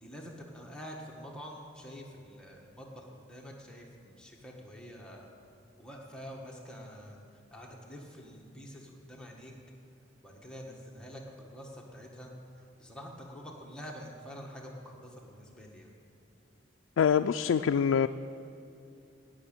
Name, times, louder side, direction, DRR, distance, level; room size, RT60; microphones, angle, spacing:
voice 1, 0.0-5.3 5.8-7.2 7.5-9.5 10.2-15.9, equal, 5° left, -2 dB, 1.4 m, -47 dB
voice 2, 17.0-18.1, left 7 dB, 85° left, 7 dB, 0.3 m, -25 dB
17.0 x 6.2 x 8.8 m, 2.9 s
head